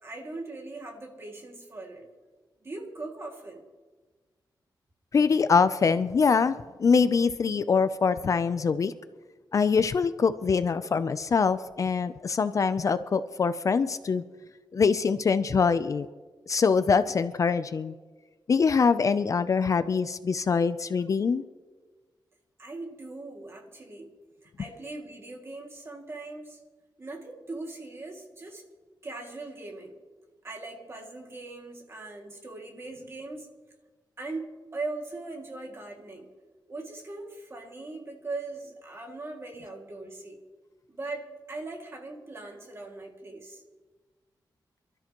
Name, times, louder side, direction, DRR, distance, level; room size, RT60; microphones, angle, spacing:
voice 1, 0.0-2.1 2.6-3.6 22.6-24.1 24.4-26.6 27.0-28.6 29.0-30.0 30.4-33.5 34.2-36.3 36.7-40.4 40.9-43.6, right 2 dB, 35° right, 1 dB, 2.3 m, -40 dB
voice 2, 5.1-8.9 9.5-14.2 14.7-16.1 16.5-17.9 18.5-21.4, left 5 dB, 45° left, 12 dB, 0.5 m, -24 dB
27.5 x 13.0 x 3.0 m, 1.4 s
wide cardioid pair, 160°, 8 cm